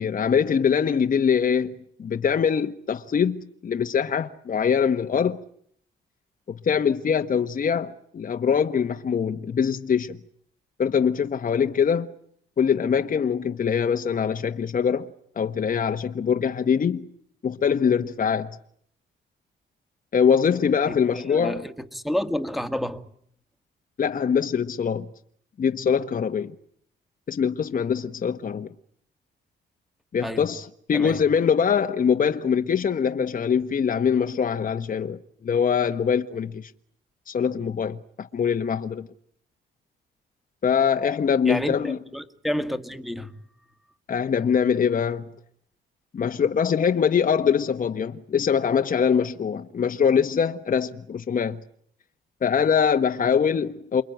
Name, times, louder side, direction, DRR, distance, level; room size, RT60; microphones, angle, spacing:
voice 1, 0.0-5.4 6.5-10.2 10.8-12.1 12.6-15.1 15.4-17.1 17.4-18.6 20.1-21.6 24.0-25.1 25.6-26.5 27.3-28.7 30.1-36.7 37.3-39.1 40.6-42.0 44.1-45.3 46.1-51.6 52.4-54.0, left 7 dB, 45° left, 1.3 m, -23 dB
voice 2, 21.3-23.1 30.2-30.5 30.9-31.2 41.5-43.3, equal, ahead, 2.0 m, -29 dB
28.5 x 22.5 x 9.2 m
cardioid pair, 90°, 20 cm